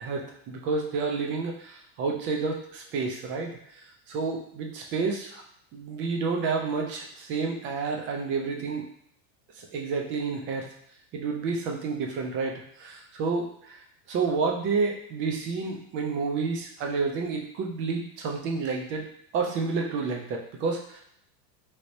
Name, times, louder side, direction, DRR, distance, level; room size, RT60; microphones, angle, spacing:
voice 1, 0.0-3.5 4.1-5.3 5.7-8.9 9.6-10.7 11.1-13.8 14.1-19.1 19.3-21.0, right 4 dB, 25° right, 1 dB, 0.4 m, -30 dB
3.3 x 2.8 x 2.6 m, 0.70 s
supercardioid pair, 125°, 50 cm